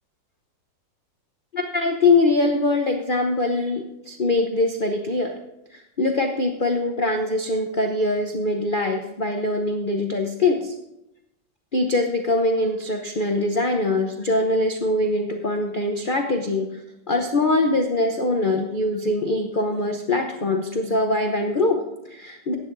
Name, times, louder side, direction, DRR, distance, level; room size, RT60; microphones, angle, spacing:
voice 1, 1.5-5.4 5.7-10.7 11.7-16.8 17.1-22.5, left 2 dB, 45° left, 3 dB, 0.6 m, -23 dB
15.5 x 10.5 x 2.6 m, 0.87 s
omnidirectional pair, 2.0 m